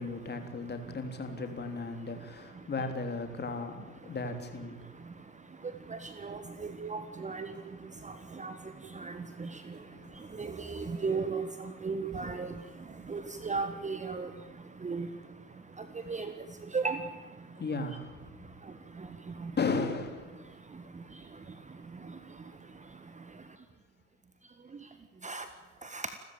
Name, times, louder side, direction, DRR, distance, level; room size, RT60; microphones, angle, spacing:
voice 1, 0.0-4.9 9.8-10.3 17.6-18.5 19.6-20.4, left 3 dB, 25° left, 6 dB, 3.3 m, -36 dB
voice 2, 6.8-7.5 8.4-8.5 9.0-9.1 9.4-9.5 10.4-11.4 11.8-12.5 13.1-14.3 14.8-15.1 16.1-16.3 16.7-17.0 25.2-25.4 25.9-26.0, right 4 dB, 15° right, 9 dB, 1.5 m, -34 dB
29.0 x 13.5 x 8.9 m, 1.2 s
figure-of-eight pair, 70°, 43 cm